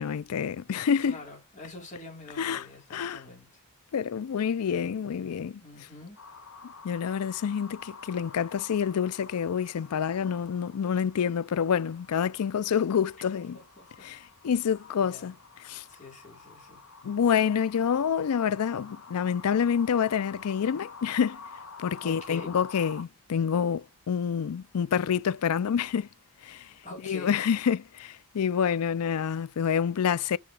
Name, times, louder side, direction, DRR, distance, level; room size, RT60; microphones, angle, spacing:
voice 1, 0.0-1.2 2.4-2.6 2.9-3.2 3.9-5.6 6.8-13.6 14.0-14.2 14.4-15.3 15.6-15.8 17.0-21.4 21.8-26.1 26.4-26.7 27.0-30.4, left 7 dB, 90° left, 0.4 m, -27 dB
voice 2, 1.0-3.6 5.6-6.2 13.3-14.1 15.0-15.4 15.9-16.8 22.0-22.6 26.8-27.3, left 2 dB, 35° left, 4.5 m, -45 dB
sound 1, 6.2-23.0, left 4 dB, 65° left, 1.7 m, -49 dB
6.9 x 6.2 x 4.8 m
head